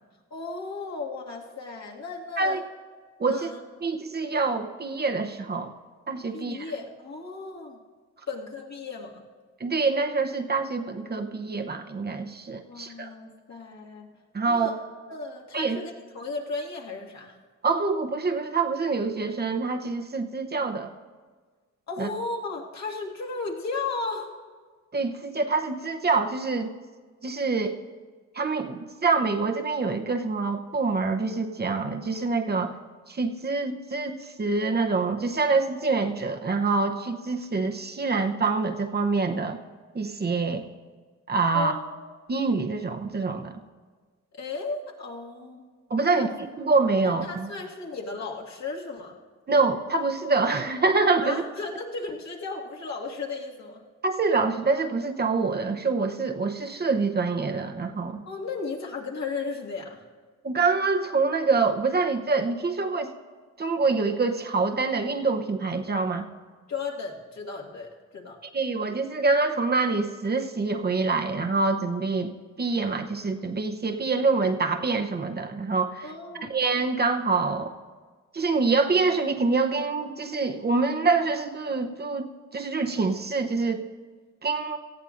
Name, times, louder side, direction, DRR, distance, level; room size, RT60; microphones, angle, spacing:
voice 1, 0.3-2.6 3.3-3.6 6.3-7.8 8.3-9.2 12.7-14.1 14.4-14.7 15.1-17.4 21.9-24.3 41.5-42.1 44.3-45.7 46.0-46.3 47.0-49.2 51.2-53.8 58.3-60.0 66.7-68.4 76.0-76.5, left 3 dB, 60° left, -2 dB, 1.9 m, -35 dB
voice 2, 3.2-3.5 3.8-5.7 6.1-6.6 9.6-13.1 14.3-14.7 15.5-15.8 17.6-20.9 22.0-22.1 24.9-26.7 27.2-27.8 28.3-32.7 33.1-39.6 39.9-40.6 41.3-41.7 42.3-43.5 45.9-46.3 46.6-47.5 49.5-51.4 54.0-58.2 60.4-63.1 63.6-66.3 68.5-72.3 72.6-76.0 76.5-77.7 78.3-83.8 84.4-84.8, right 4 dB, 30° right, 4 dB, 0.8 m, -25 dB
18.0 x 14.0 x 2.5 m, 1.5 s
cardioid pair, 80°, 31 cm